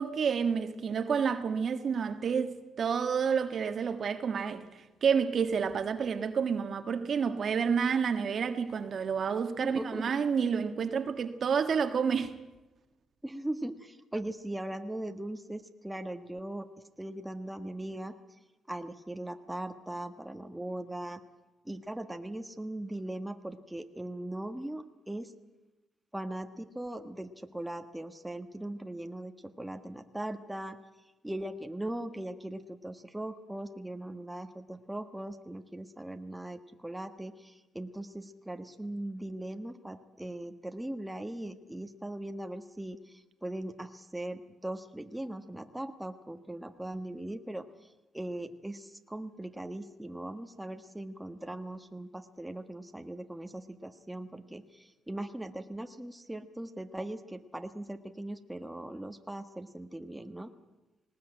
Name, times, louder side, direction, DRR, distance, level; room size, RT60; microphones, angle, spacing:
voice 1, 0.0-12.3, right 6 dB, 55° right, 1.5 m, -29 dB
voice 2, 9.6-10.1 13.2-16.7 17.0-18.1 18.7-21.2 21.6-25.3 26.1-30.8 31.2-47.6 48.1-60.5, right 1 dB, 5° right, 1.4 m, -39 dB
19.5 x 18.0 x 8.9 m
cardioid pair, 90°, 0 cm